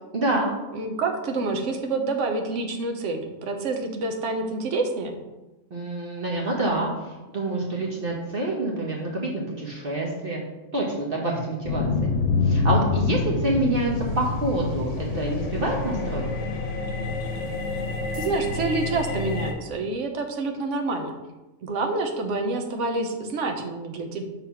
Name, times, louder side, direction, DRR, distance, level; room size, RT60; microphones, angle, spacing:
voice 1, 0.1-0.5 5.7-10.4 10.7-12.1 12.4-16.2, right 2 dB, 45° right, -2 dB, 1.2 m, -27 dB
voice 2, 0.7-5.2 18.2-21.1 21.6-24.2, right 3 dB, 60° right, 4 dB, 1.2 m, -27 dB
sound 1, 11.6-19.5, left 3 dB, 60° left, 1.3 m, -26 dB
6.5 x 4.0 x 5.6 m, 1.1 s
omnidirectional pair, 1.4 m